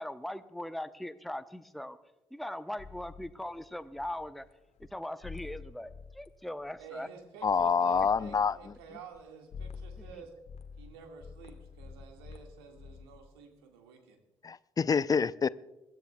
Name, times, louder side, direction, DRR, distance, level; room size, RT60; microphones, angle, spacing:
voice 1, 0.0-2.0 2.3-4.4 4.8-7.1 10.0-10.2, left 1 dB, ahead, 0.7 m, -40 dB
sound 1, 2.8-4.5 4.8-4.9 5.2-6.3 6.6-7.1 7.4-7.6 7.9-9.2 9.5-10.1 10.5-13.2, left 5 dB, 55° left, 1.3 m, -48 dB
voice 2, 6.8-10.3 10.8-14.2, right 6 dB, 80° right, 1.9 m, -51 dB
voice 3, 7.4-8.6 14.4-15.5, left 5 dB, 30° left, 0.5 m, -27 dB
24.5 x 11.5 x 2.3 m
figure-of-eight pair, 45°, 13 cm